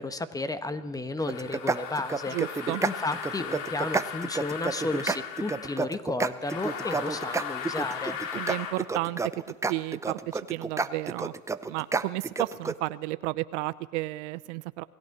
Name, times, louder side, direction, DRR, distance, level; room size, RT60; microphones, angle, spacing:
voice 1, 0.0-2.4 2.8-8.2, left 2 dB, 10° left, 11 dB, 1.2 m, -33 dB
sound 1, 1.2-5.8 6.4-8.8, left 7 dB, 55° left, 3.1 m, -37 dB
sound 2, 1.3-12.7, right 4 dB, 5° right, 0.6 m, -30 dB
voice 2, 2.3-2.8 8.3-9.2 9.5-11.3 11.7-14.8, right 20 dB, 60° right, 15 dB, 0.8 m, -32 dB
28.0 x 17.5 x 6.0 m, 1.3 s
hypercardioid pair, 115°, 41 cm